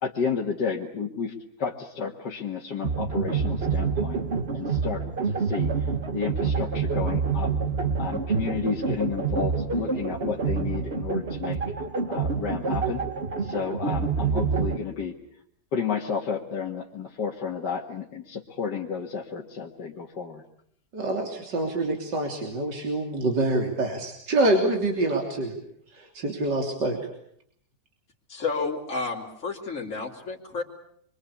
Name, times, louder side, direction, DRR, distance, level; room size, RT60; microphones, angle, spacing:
voice 1, 0.0-4.2 4.5-5.7 6.1-7.5 8.0-11.6 12.1-13.0 13.4-15.1 15.7-20.4, left 6 dB, 65° left, -1 dB, 2.4 m, -31 dB
sound 1, 2.8-14.8, right 5 dB, 35° right, 1.6 m, -27 dB
voice 2, 20.9-25.5 25.9-27.0, right 2 dB, 70° right, 2 dB, 3.9 m, -26 dB
voice 3, 28.3-30.6, left 4 dB, 40° left, -3 dB, 3.7 m, -31 dB
26.5 x 24.0 x 8.5 m, 0.67 s
omnidirectional pair, 2.0 m